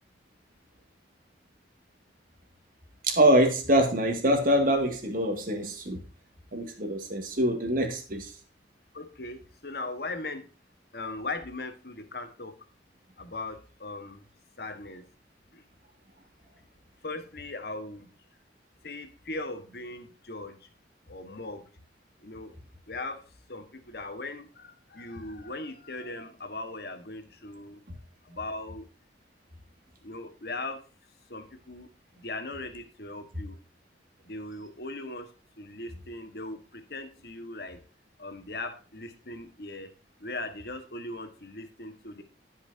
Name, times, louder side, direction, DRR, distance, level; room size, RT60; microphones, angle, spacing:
voice 1, 3.0-6.0 6.5-8.3, right 1 dB, 50° right, 2.2 m, -24 dB
voice 2, 8.9-10.5 10.9-12.5 13.2-14.2 14.6-15.0 15.5-15.6 17.0-18.1 18.8-20.7 21.1-21.6 22.2-22.5 22.9-23.2 23.5-27.8 28.2-28.9 30.0-30.8 31.3-31.9 32.1-33.6 34.2-35.3 35.6-37.8 38.2-39.9 40.2-42.2, left 2 dB, 60° left, 1.5 m, -39 dB
15.5 x 5.8 x 2.8 m
head